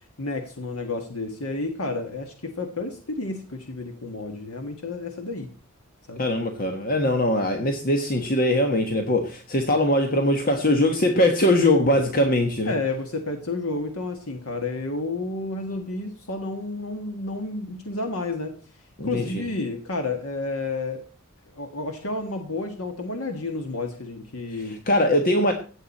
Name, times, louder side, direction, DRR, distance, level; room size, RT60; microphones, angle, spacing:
voice 1, 0.2-5.5 6.1-6.2 12.6-18.5 19.0-21.0 21.5-24.7, left 3 dB, 85° left, 4 dB, 1.6 m, -31 dB
voice 2, 6.2-12.7 19.0-19.4 24.6-25.5, left 1 dB, 45° left, 4 dB, 1.3 m, -21 dB
16.0 x 9.0 x 4.2 m, 0.40 s
head